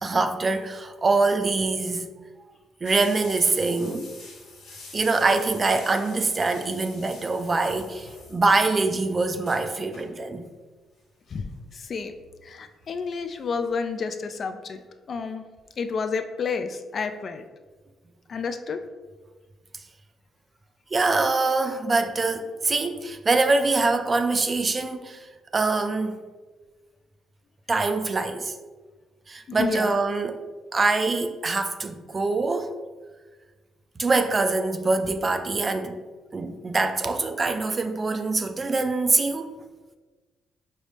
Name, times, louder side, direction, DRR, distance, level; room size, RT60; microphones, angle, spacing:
voice 1, 0.0-2.1 2.8-4.1 4.9-10.5 20.9-25.3 25.5-26.2 27.7-28.5 29.3-30.4 30.7-32.7 34.0-36.0 36.3-39.6, right 3 dB, 30° right, 0.3 m, -24 dB
sound 1, 2.8-8.7 9.0-9.1 9.3-10.2 11.3-11.5 12.1-13.4 13.7-13.8 14.2-14.3, left 3 dB, 85° left, 1.2 m, -46 dB
voice 2, 11.3-12.1 12.4-14.8 15.1-15.5 15.8-17.4 18.3-18.8 29.5-29.9, left 5 dB, 50° left, 0.3 m, -30 dB
5.3 x 2.0 x 3.2 m
cardioid pair, 90°, 0 cm